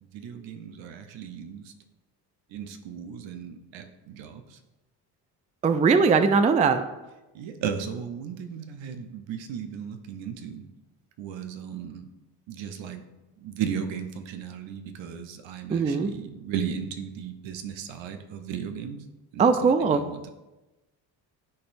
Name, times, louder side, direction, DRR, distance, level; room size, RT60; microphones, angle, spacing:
voice 1, 0.1-1.7 2.5-4.6 7.3-10.6 11.2-12.1 12.5-13.0 13.4-19.0 19.3-20.3, right 7 dB, 65° right, 7 dB, 0.9 m, -36 dB
voice 2, 5.6-6.8 15.7-16.1 19.4-20.0, right 5 dB, 15° right, 10 dB, 0.4 m, -20 dB
12.0 x 4.2 x 2.6 m, 1.1 s
supercardioid pair, 60°, 49 cm